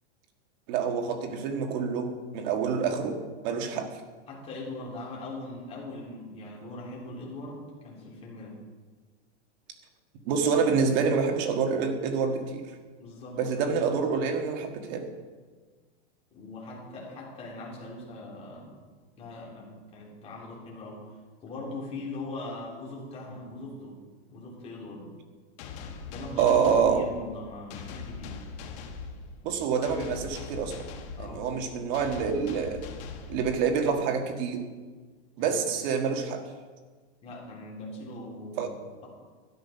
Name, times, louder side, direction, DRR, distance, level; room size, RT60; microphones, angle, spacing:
voice 1, 0.7-3.2 3.4-3.9 10.2-12.6 13.4-15.1 26.4-27.0 29.4-30.8 31.2-32.8 33.3-34.7 35.4-36.4 38.6-38.7, right 6 dB, 40° right, 4 dB, 1.7 m, -27 dB
voice 2, 4.3-8.6 13.0-13.4 16.3-18.7 19.2-21.0 21.4-24.0 24.3-25.1 26.0-28.4 31.2-31.7 35.4-35.6 37.2-38.7, left 2 dB, 20° left, -4 dB, 3.5 m, -41 dB
sound 1, 25.6-34.0, left 5 dB, 40° left, 1.5 m, -42 dB
13.0 x 10.0 x 5.7 m, 1.4 s
supercardioid pair, 165°, 34 cm